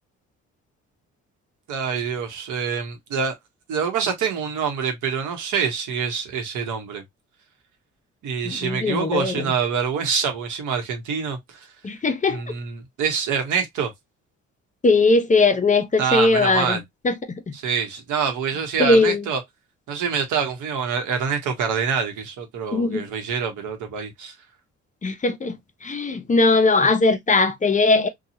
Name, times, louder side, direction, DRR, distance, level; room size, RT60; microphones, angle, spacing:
voice 1, 1.7-3.3 3.7-7.0 8.2-11.4 12.3-13.9 16.0-16.8 17.5-19.4 19.9-24.3, right 6 dB, 80° right, 1.0 m, -26 dB
voice 2, 8.4-9.5 11.8-12.4 14.8-16.8 17.0-17.1 17.5-17.6 18.8-19.2 22.7-23.1 25.0-25.6 25.8-28.1, left 3 dB, 25° left, 0.6 m, -19 dB
2.8 x 2.3 x 2.7 m
cardioid pair, 90°, 30 cm